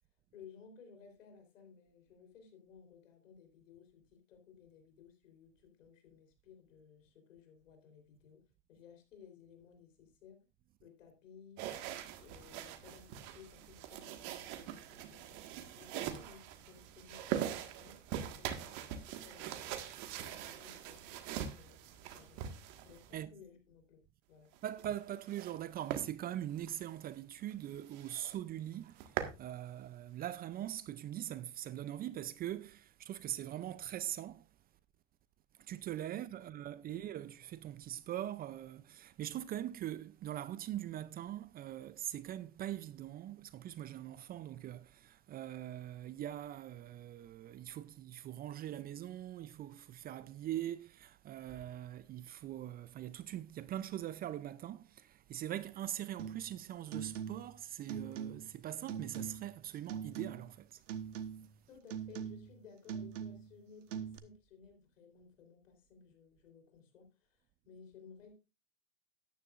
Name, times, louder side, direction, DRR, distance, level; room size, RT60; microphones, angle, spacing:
voice 1, 0.3-10.4 10.8-11.7 12.2-18.0 18.4-19.8 20.3-21.8 22.1-22.6 22.8-24.0 24.3-24.5 36.8-37.1 61.7-68.4, left 6 dB, 80° left, 3.8 m, -58 dB
sound 1, 11.6-23.2 24.5-25.6 25.9-26.1 26.6-26.7 27.1-27.2 27.5-27.6 27.9-28.4 28.7-29.4, right 10 dB, 50° right, 1.7 m, -42 dB
voice 2, 24.6-34.5 35.6-60.8, right 12 dB, 25° right, 0.5 m, -42 dB
sound 2, 56.2-56.5 56.9-57.6 57.9-58.6 58.9-59.5 59.9-60.6 60.9-61.5 61.9-62.6 62.9-63.6 63.9-64.2, right 8 dB, 75° right, 1.3 m, -42 dB
13.5 x 10.0 x 2.5 m
hypercardioid pair, 110°, 38 cm